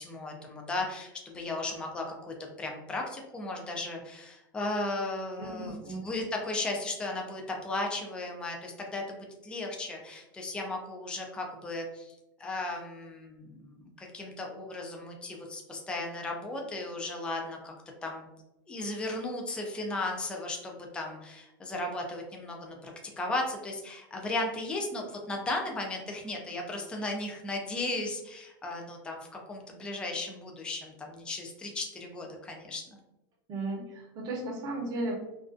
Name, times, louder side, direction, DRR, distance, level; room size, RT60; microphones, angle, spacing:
voice 1, 0.0-17.7 18.0-18.3 18.7-22.9 23.2-32.8, left 2 dB, 10° left, 1 dB, 0.3 m, -36 dB
voice 2, 5.4-6.2 33.5-35.1, right 2 dB, 30° right, -2 dB, 0.7 m, -35 dB
2.4 x 2.1 x 2.4 m, 0.93 s
supercardioid pair, 145°, 12 cm